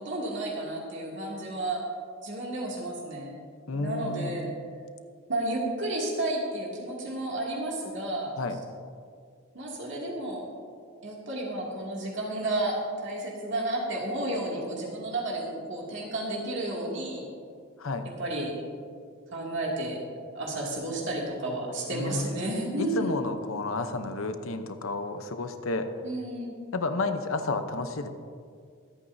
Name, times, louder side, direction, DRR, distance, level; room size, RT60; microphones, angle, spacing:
voice 1, 0.0-1.8 2.2-3.3 3.7-4.5 5.3-8.3 9.5-10.4 11.0-12.8 13.0-17.3 18.2-18.5 19.3-20.0 20.3-23.1 26.0-26.5, right 1 dB, 60° right, -4 dB, 2.5 m, -32 dB
voice 2, 3.7-4.3 8.4-8.6 17.8-18.1 21.9-22.4 22.8-25.9 26.7-28.1, left 3 dB, 75° left, 8 dB, 0.9 m, -31 dB
23.5 x 9.0 x 2.7 m, 2.2 s
head